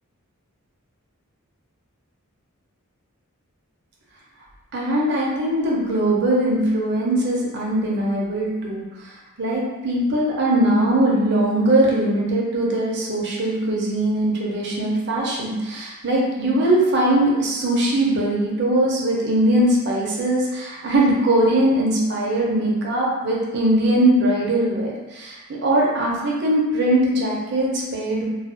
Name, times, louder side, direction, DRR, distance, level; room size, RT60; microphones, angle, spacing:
voice 1, 4.7-8.8 9.4-28.3, right 1 dB, 50° right, -3 dB, 0.6 m, -21 dB
2.4 x 2.2 x 2.5 m, 1.1 s
head